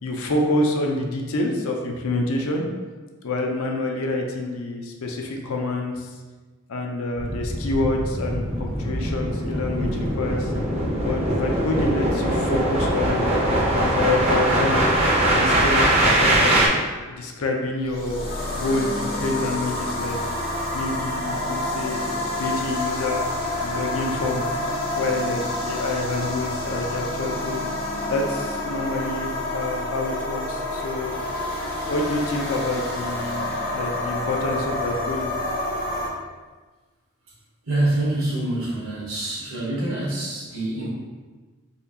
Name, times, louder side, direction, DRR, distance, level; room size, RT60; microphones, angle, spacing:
voice 1, 0.0-2.6 3.2-6.1 6.7-10.5 11.0-14.8 15.3-16.6 17.0-20.2 20.7-23.2 23.6-24.5 25.0-27.7 28.1-31.1 31.8-35.3, left 2 dB, 75° left, 1 dB, 0.5 m, -27 dB
sound 1, 7.2-16.7, right 1 dB, 30° right, 0.6 m, -22 dB
sound 2, 17.8-36.1, left 1 dB, 45° left, 0.7 m, -28 dB
voice 2, 37.6-40.9, right 1 dB, 70° right, -6 dB, 1.2 m, -26 dB
4.2 x 2.7 x 2.7 m, 1.3 s
head